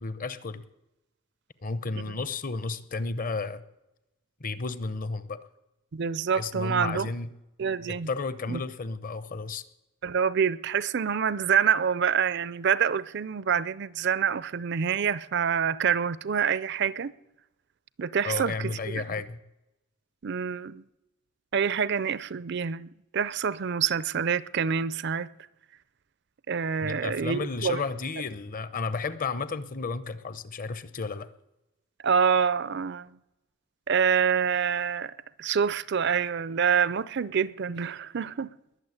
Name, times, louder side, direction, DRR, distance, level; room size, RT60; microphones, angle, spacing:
voice 1, 0.0-0.6 1.6-3.6 4.4-5.5 6.3-7.3 7.9-9.6 18.2-19.4 26.8-31.3, left 4 dB, 40° left, 0.8 m, -32 dB
voice 2, 5.9-7.1 7.6-8.1 8.5-8.6 10.0-17.1 18.0-19.0 20.2-20.8 21.5-25.3 26.5-27.8 32.0-33.2 33.9-35.1 35.4-38.5, right 7 dB, 50° right, 0.5 m, -26 dB
20.5 x 7.1 x 9.6 m
head